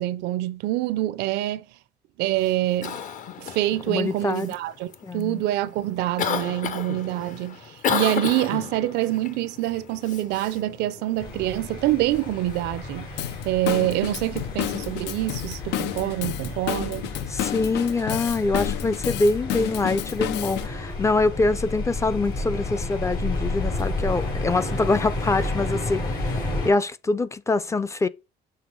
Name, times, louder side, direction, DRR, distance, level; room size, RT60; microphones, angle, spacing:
voice 1, 0.0-1.7 2.2-3.0 3.4-13.1 13.4-17.1, right 15 dB, 90° right, 0.5 m, -26 dB
Cough, 2.3-16.8, left 7 dB, 50° left, 0.8 m, -35 dB
voice 2, 3.9-4.5 5.0-5.4 17.3-28.1, left 3 dB, 15° left, 0.4 m, -24 dB
sound 1, 11.2-26.7, left 2 dB, 70° left, 3.6 m, -31 dB
Drum kit / Drum, 13.2-20.7, left 13 dB, 90° left, 0.5 m, -31 dB
6.9 x 3.7 x 4.5 m
cardioid pair, 110°, 17 cm